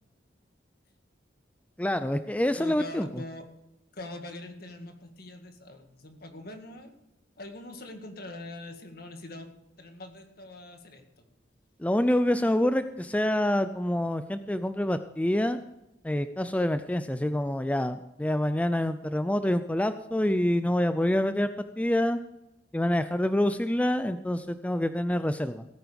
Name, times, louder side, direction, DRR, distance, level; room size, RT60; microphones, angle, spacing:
voice 1, 1.8-3.2 11.8-15.6 16.0-21.5 21.8-22.2 22.7-25.7, left 1 dB, 10° left, 10 dB, 0.4 m, -26 dB
voice 2, 2.6-3.5 3.9-6.9 7.4-9.5 9.8-11.3, left 1 dB, 55° left, 5 dB, 2.0 m, -43 dB
17.0 x 9.5 x 5.2 m, 0.89 s
head